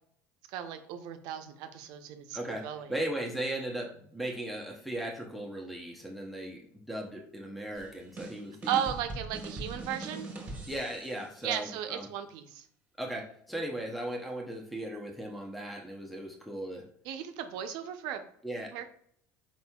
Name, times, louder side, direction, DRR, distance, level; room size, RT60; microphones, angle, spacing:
voice 1, 0.5-2.9 8.7-10.3 11.4-12.7 17.0-18.2 18.7-18.8, right 10 dB, 70° right, 7 dB, 0.5 m, -35 dB
voice 2, 2.3-8.8 10.7-12.1 13.0-16.9 18.4-18.8, right 1 dB, ahead, 0 dB, 0.6 m, -37 dB
sound 1, 7.8-11.3, right 2 dB, 20° right, 1.2 m, -41 dB
4.4 x 4.2 x 2.2 m, 0.63 s
supercardioid pair, 120°, 7 cm